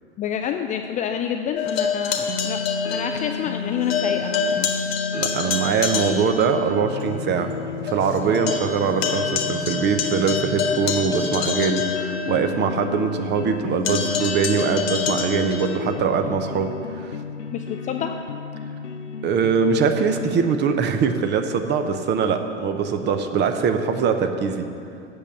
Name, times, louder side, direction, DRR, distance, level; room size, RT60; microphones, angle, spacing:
voice 1, 0.2-2.6 2.9-4.7 17.5-18.2, left 9 dB, 20° left, 5 dB, 0.4 m, -28 dB
sound 1, 1.6-3.6 3.9-6.5 7.0-7.1 7.5-7.6 7.9-12.7 13.8-15.8, left 6 dB, 60° left, 1.4 m, -27 dB
sound 2, 2.3-20.5, left 5 dB, 90° left, 0.5 m, -32 dB
voice 2, 5.1-7.5 7.8-17.1 19.2-24.7, right 6 dB, 30° right, 7 dB, 0.9 m, -22 dB
8.3 x 7.2 x 8.2 m, 2.5 s
figure-of-eight pair, 80°, 35 cm